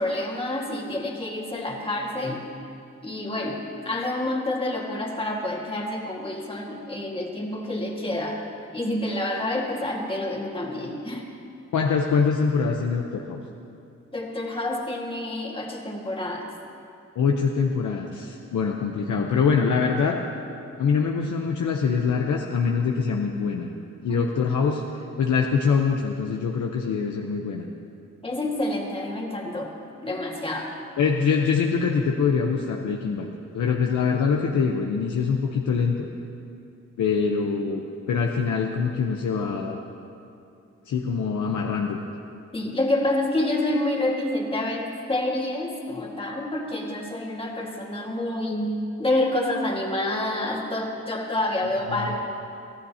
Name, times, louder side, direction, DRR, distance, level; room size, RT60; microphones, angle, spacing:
voice 1, 0.0-2.5 3.0-8.4 8.7-11.3 14.1-16.5 24.1-24.2 28.2-29.7 30.0-30.7 42.5-52.2, left 1 dB, 20° left, -1 dB, 1.9 m, -28 dB
voice 2, 11.7-13.4 17.2-20.2 20.8-23.7 24.0-24.8 25.2-27.6 31.0-33.3 33.5-36.1 37.0-39.8 40.9-42.0 51.9-52.1, left 5 dB, 85° left, 1 dB, 0.9 m, -24 dB
23.5 x 15.0 x 2.9 m, 2.6 s
wide cardioid pair, 110°, 29 cm